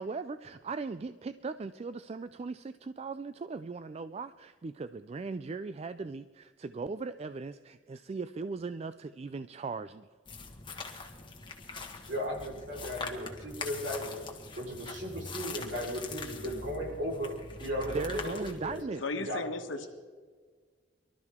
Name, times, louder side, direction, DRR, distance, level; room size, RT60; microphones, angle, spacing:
voice 1, 0.0-10.1 17.9-19.0, right 4 dB, 35° right, 12 dB, 0.3 m, -38 dB
sound 1, 10.3-18.8, left 3 dB, 25° left, 1.6 m, -43 dB
voice 2, 12.1-14.3 14.5-17.3 17.6-18.8 19.1-19.4, equal, 70° right, -1 dB, 4.3 m, -36 dB
voice 3, 19.0-19.9, left 3 dB, 85° left, 7 dB, 1.3 m, -35 dB
24.0 x 12.5 x 3.6 m, 1.6 s
head